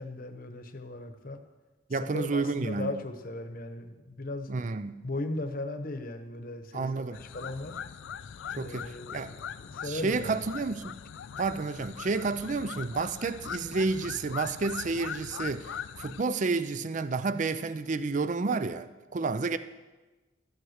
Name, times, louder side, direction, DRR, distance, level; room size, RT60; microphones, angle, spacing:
voice 1, 0.0-1.4 1.9-4.5 5.0-7.8 8.5-10.4, left 2 dB, 45° left, 7 dB, 1.0 m, -37 dB
voice 2, 1.9-2.9 4.5-5.0 6.7-7.2 8.6-9.3 9.8-10.9 11.4-15.7 16.0-19.6, right 4 dB, 40° right, 13 dB, 0.5 m, -30 dB
sound 1, 7.1-16.2, left 8 dB, 75° left, 0.4 m, -41 dB
13.0 x 8.0 x 6.4 m, 1.2 s
head